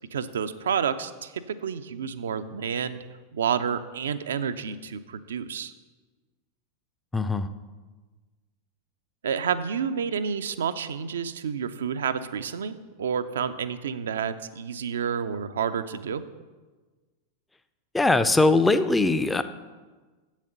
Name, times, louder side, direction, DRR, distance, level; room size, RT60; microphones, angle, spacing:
voice 1, 0.1-3.0 3.3-5.7 9.2-16.2, right 7 dB, 65° right, 11 dB, 0.5 m, -29 dB
voice 2, 7.1-7.5 17.9-19.4, left 2 dB, 10° left, 12 dB, 0.5 m, -21 dB
7.7 x 7.3 x 6.8 m, 1.3 s
figure-of-eight pair, 90°, 0 cm